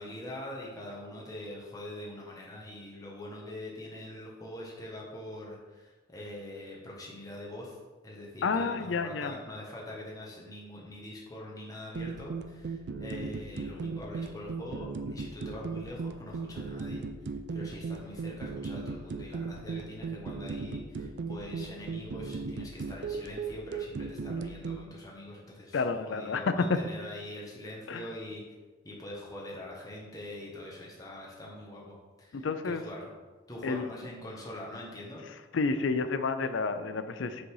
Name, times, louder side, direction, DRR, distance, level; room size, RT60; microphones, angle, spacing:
voice 1, 0.0-7.8 8.0-28.4 28.8-33.1 33.5-35.3, left 1 dB, 20° left, -3 dB, 1.3 m, -44 dB
voice 2, 8.4-9.3 25.7-26.8 27.9-28.0 32.3-32.8 33.6-33.9 35.5-37.4, left 4 dB, 80° left, 10 dB, 0.5 m, -30 dB
sound 1, 12.0-24.8, right 4 dB, 60° right, 0.4 m, -37 dB
6.4 x 4.0 x 4.7 m, 1.3 s
head